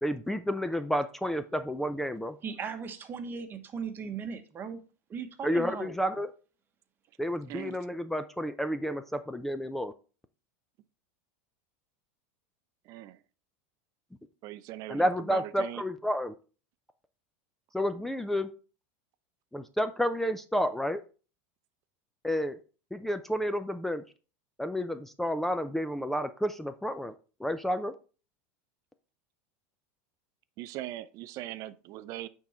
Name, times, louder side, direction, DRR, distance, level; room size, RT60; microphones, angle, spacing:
voice 1, 0.0-2.4 5.4-6.3 7.2-9.9 14.9-16.3 17.7-18.5 19.5-21.0 22.2-22.6 22.9-24.0 24.6-27.1 27.4-27.9, equal, 5° left, 0.5 m, -30 dB
voice 2, 2.4-4.8 5.1-5.9, right 6 dB, 30° right, 1.1 m, -38 dB
voice 3, 12.9-13.2 14.4-15.8 30.6-32.3, right 14 dB, 50° right, 0.6 m, -40 dB
8.9 x 3.8 x 4.3 m
supercardioid pair, 120°, 7 cm